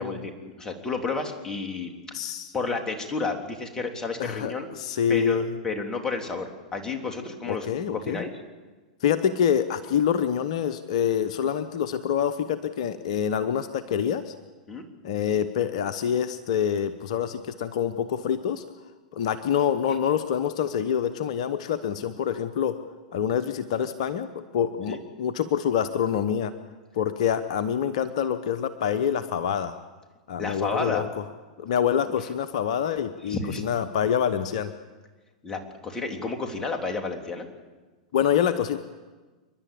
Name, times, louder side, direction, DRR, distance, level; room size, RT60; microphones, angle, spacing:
voice 1, 0.0-1.9 2.5-4.7 5.1-7.7 7.9-8.3 14.7-14.9 24.9-25.0 30.4-31.0 33.3-33.6 35.4-37.5, left 4 dB, 15° left, 2 dB, 3.4 m, -31 dB
voice 2, 2.1-2.5 4.2-5.5 7.5-8.2 9.0-14.3 15.0-18.6 19.1-22.8 23.1-26.5 26.9-29.7 30.3-31.1 31.6-34.7 38.1-38.8, left 8 dB, 65° left, 11 dB, 1.0 m, -26 dB
29.0 x 11.5 x 8.6 m, 1.3 s
hypercardioid pair, 100°, 4 cm